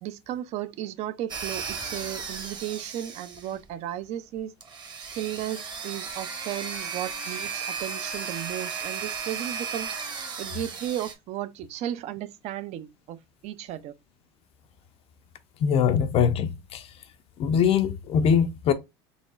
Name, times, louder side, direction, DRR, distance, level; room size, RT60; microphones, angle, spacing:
voice 1, 0.0-4.5 5.1-10.0 10.4-13.2 13.4-13.9, right 12 dB, 55° right, 0.5 m, -34 dB
sound 1, 1.3-3.7 4.6-11.1, right 5 dB, 30° right, 1.0 m, -35 dB
voice 2, 15.6-16.9 17.4-18.7, left 7 dB, 45° left, 0.4 m, -22 dB
4.1 x 3.0 x 2.4 m
supercardioid pair, 110°, 14 cm